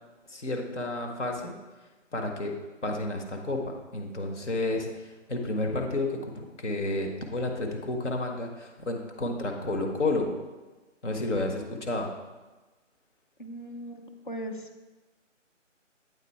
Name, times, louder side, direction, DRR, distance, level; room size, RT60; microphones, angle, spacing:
voice 1, 0.3-1.5 2.1-10.3 11.0-12.1, left 2 dB, 65° left, 2 dB, 1.3 m, -31 dB
voice 2, 13.4-14.9, right 1 dB, 40° left, 4 dB, 0.6 m, -39 dB
8.4 x 4.0 x 4.2 m, 1.2 s
figure-of-eight pair, 170°, 38 cm